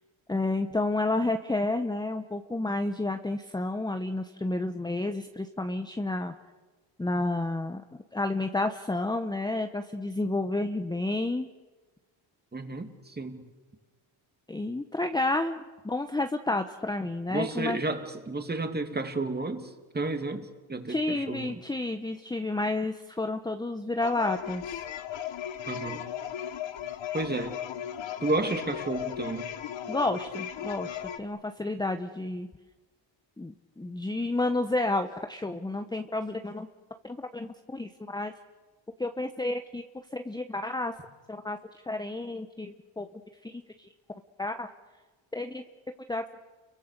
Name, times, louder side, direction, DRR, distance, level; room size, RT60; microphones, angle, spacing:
voice 1, 0.3-6.3 7.0-7.8 8.1-11.5 14.5-17.8 20.9-24.6 29.9-32.5 33.4-36.7 37.0-38.3 39.0-39.8 40.1-40.9 41.3-41.6 41.8-43.1 43.4-43.9 44.4-44.7 45.3-45.6 46.1-46.2, left 2 dB, 10° left, 7 dB, 1.0 m, -30 dB
voice 2, 12.5-13.5 17.3-21.6 25.7-26.1 27.1-27.6 28.2-29.5, right 2 dB, 20° right, 6 dB, 2.8 m, -32 dB
sound 1, 24.0-31.2, left 9 dB, 70° left, 1.5 m, -36 dB
30.0 x 23.5 x 6.8 m, 1.3 s
cardioid pair, 105°, 47 cm